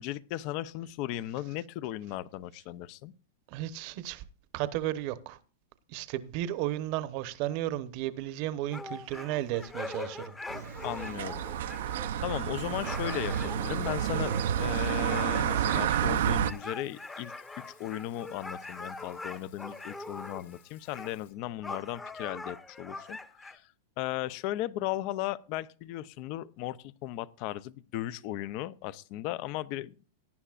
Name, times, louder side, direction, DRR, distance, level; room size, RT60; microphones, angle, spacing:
voice 1, 0.0-3.1 10.8-11.4 12.2-23.2 23.5-23.6 24.0-29.9, left 14 dB, 45° left, 0.6 m, -36 dB
voice 2, 3.5-4.2 4.5-5.4 5.9-10.4, right 14 dB, 50° right, 1.0 m, -34 dB
sound 1, 8.7-20.6 20.9-21.1 21.6-23.6, left 3 dB, 10° left, 0.9 m, -43 dB
sound 2, 10.5-16.5, right 9 dB, 75° right, 0.6 m, -30 dB
Water tap faucet / Sink (filling or washing), 12.5-21.3, left 12 dB, 65° left, 5.6 m, -63 dB
18.0 x 10.0 x 2.5 m
hypercardioid pair, 135°, 0 cm